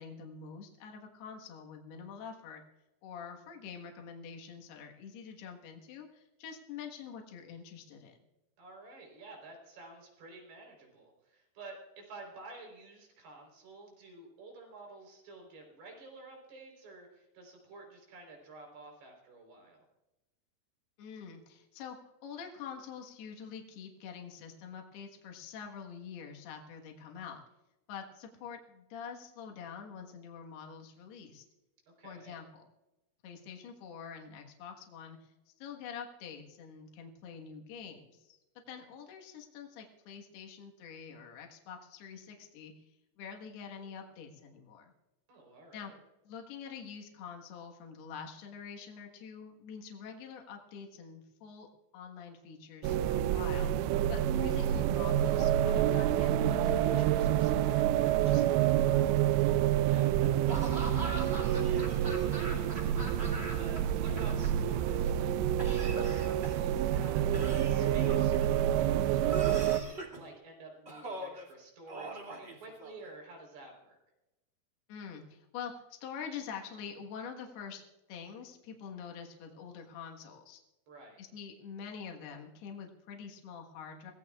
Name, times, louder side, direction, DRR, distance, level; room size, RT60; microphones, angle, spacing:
voice 1, 0.0-2.6 3.0-8.2 21.0-22.0 22.2-27.4 27.9-31.5 32.0-32.7 33.2-38.4 38.7-44.9 45.7-45.9 46.3-59.1 74.9-77.8 78.1-80.6 81.2-84.1, left 7 dB, 75° left, 2 dB, 3.5 m, -46 dB
voice 2, 8.6-19.8 32.0-32.4 45.3-46.0 59.4-74.0 80.9-81.2, right 2 dB, 70° right, 1 dB, 6.0 m, -51 dB
sound 1, 52.8-69.8, right 11 dB, 90° right, 2.8 m, -28 dB
Laughter / Cough, 60.5-63.8 64.0-64.9 65.6-66.7 67.3-68.5 69.3-70.2 70.9-71.4 71.9-73.1, right 1 dB, 20° right, 1.9 m, -41 dB
24.5 x 17.5 x 2.4 m, 0.97 s
omnidirectional pair, 4.8 m